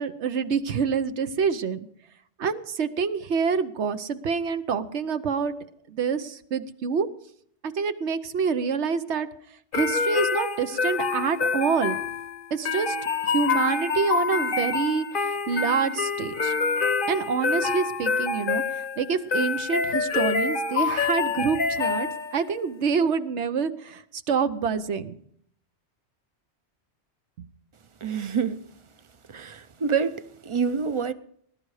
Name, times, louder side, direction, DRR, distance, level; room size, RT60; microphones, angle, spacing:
voice 1, 0.0-1.8 2.4-5.5 5.9-7.1 7.6-9.3 9.7-12.0 12.5-13.0 13.3-16.5 17.1-25.1, right 6 dB, 75° right, 1.2 m, -27 dB
sound 1, 9.7-22.5, left 5 dB, 50° left, 0.9 m, -27 dB
voice 2, 28.0-28.6 29.3-31.1, right 6 dB, 35° right, 0.6 m, -27 dB
20.0 x 11.5 x 4.8 m
omnidirectional pair, 1.2 m